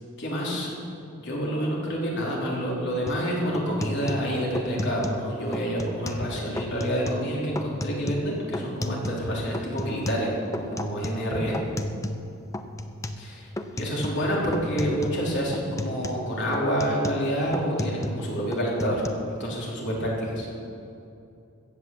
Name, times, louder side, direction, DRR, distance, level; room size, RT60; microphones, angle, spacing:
voice 1, 0.2-0.7 1.2-10.3 10.6-11.6 13.2-19.0 19.3-20.5, equal, 55° left, -4 dB, 3.4 m, -28 dB
sound 1, 3.1-3.2 3.5-5.3 5.5-6.3 6.6-7.3 7.6-9.3 9.5-12.3 12.5-13.3 13.6-14.3 14.5-15.2 15.5-18.3 18.5-19.1, left 1 dB, 15° left, 0.6 m, -33 dB
15.5 x 8.3 x 7.3 m, 2.7 s
head